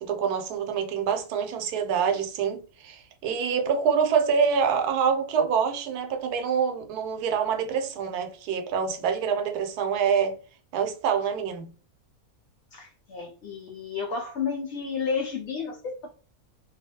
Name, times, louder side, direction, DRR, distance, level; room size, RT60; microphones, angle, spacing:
voice 1, 0.0-10.4 10.7-11.7, right 6 dB, 85° right, 1.1 m, -26 dB
voice 2, 12.7-16.1, left 5 dB, 70° left, 0.7 m, -32 dB
2.6 x 2.4 x 2.7 m
omnidirectional pair, 1.6 m